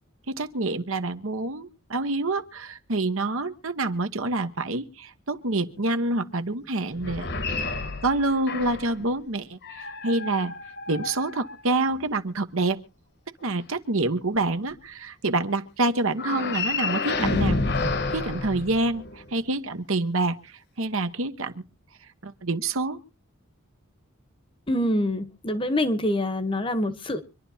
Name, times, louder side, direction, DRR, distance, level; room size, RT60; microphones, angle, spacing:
voice 1, 0.3-7.3 8.0-10.5 10.9-12.8 13.4-17.6 18.1-20.4 20.8-21.6 22.2-23.0, right 2 dB, 75° right, 9 dB, 1.1 m, -27 dB
sound 1, 6.9-9.0 9.6-12.0 16.1-19.3, left 3 dB, 50° left, 1.2 m, -30 dB
voice 2, 24.7-27.2, left 1 dB, 25° left, 11 dB, 1.0 m, -25 dB
25.5 x 11.5 x 2.8 m, 0.32 s
head